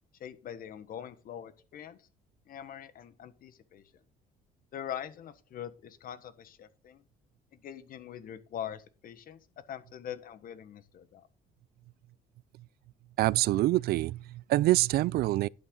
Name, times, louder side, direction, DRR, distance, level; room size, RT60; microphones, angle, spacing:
voice 1, 0.2-2.1 2.5-3.8 4.7-7.0 7.5-9.4 9.7-11.3, left 9 dB, 55° left, 1.3 m, -43 dB
voice 2, 13.2-15.5, right 16 dB, 65° right, 0.4 m, -26 dB
11.0 x 8.8 x 3.8 m
cardioid pair, 110°, 17 cm